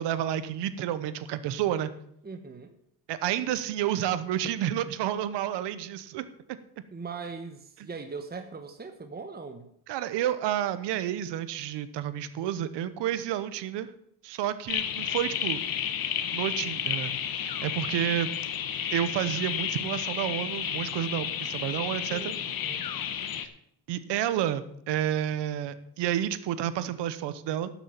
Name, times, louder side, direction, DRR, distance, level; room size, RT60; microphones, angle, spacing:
voice 1, 0.0-1.9 3.1-6.3 9.9-13.9 14.2-15.6 16.3-18.3 18.9-22.3 23.4-23.5 23.9-27.7, right 11 dB, 85° right, 14 dB, 1.0 m, -30 dB
voice 2, 2.2-2.7 6.9-9.7 22.1-22.8, right 4 dB, 25° right, 6 dB, 1.3 m, -40 dB
sound 1, 14.7-23.5, left 9 dB, 60° left, 1.3 m, -32 dB
12.0 x 7.2 x 7.2 m, 0.73 s
cardioid pair, 80°, 40 cm